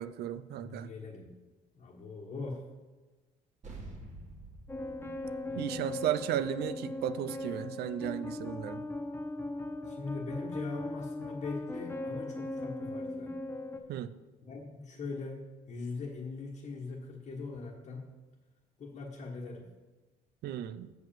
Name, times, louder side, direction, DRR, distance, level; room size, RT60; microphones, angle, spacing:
voice 1, 0.0-0.9 5.5-8.8 13.9-14.1 20.4-20.9, right 11 dB, 70° right, 13 dB, 0.6 m, -35 dB
voice 2, 0.6-1.4 1.7-2.6 5.5-5.9 9.8-13.3 14.4-18.1 18.8-19.7, left 3 dB, 45° left, -3 dB, 1.4 m, -41 dB
sound 1, 3.6-8.4, right 2 dB, 45° right, 2.2 m, -50 dB
sound 2, 4.7-13.8, left 2 dB, 15° left, 0.7 m, -39 dB
7.8 x 5.2 x 7.2 m, 1.2 s
cardioid pair, 110°, 17 cm